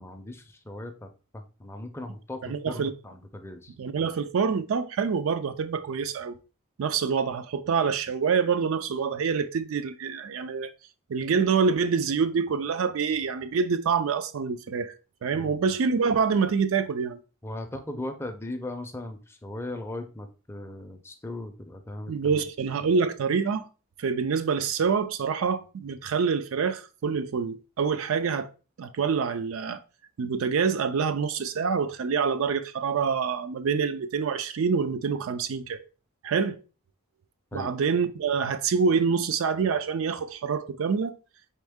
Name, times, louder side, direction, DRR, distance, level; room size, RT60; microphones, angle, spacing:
voice 1, 0.0-3.7 15.3-15.6 17.4-22.4 37.5-37.7, left 1 dB, 10° left, 0.5 m, -38 dB
voice 2, 2.4-2.9 3.8-6.4 6.8-10.7 11.1-14.9 15.2-17.2 22.1-23.7 24.0-28.5 28.8-29.8 30.2-35.8 36.2-36.6 37.5-41.1, right 5 dB, 65° right, 0.4 m, -26 dB
4.3 x 3.5 x 3.5 m
head